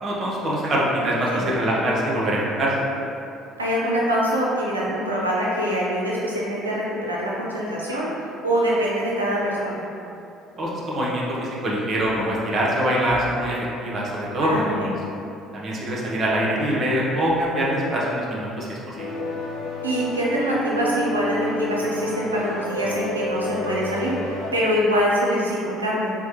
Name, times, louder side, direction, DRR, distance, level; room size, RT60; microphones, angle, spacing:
voice 1, 0.0-2.7 10.6-14.9 15.5-19.2, right 1 dB, 40° right, -4 dB, 0.8 m, -24 dB
voice 2, 3.6-9.8 14.4-14.9 19.8-26.1, equal, 85° right, -5 dB, 0.5 m, -24 dB
sound 1, 19.0-24.5, left 1 dB, 60° left, 0.7 m, -29 dB
4.5 x 2.1 x 2.8 m, 2.7 s
figure-of-eight pair, 55°, 0 cm